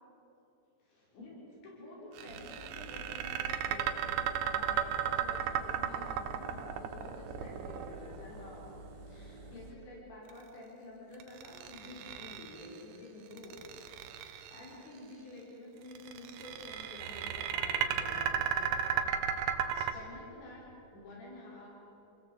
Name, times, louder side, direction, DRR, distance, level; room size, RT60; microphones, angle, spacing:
voice 1, 0.8-8.7 9.1-13.7 14.1-19.4 19.7-20.6 20.9-21.7, left 1 dB, 80° left, -5 dB, 8.1 m, -50 dB
Engine, 2.2-9.7, right 2 dB, 60° right, 3.9 m, -50 dB
sound 1, 2.2-8.4 11.2-12.8 13.3-14.7 15.9-19.9, right 9 dB, 80° right, 3.3 m, -34 dB
29.0 x 21.0 x 8.1 m, 3.0 s
omnidirectional pair, 5.0 m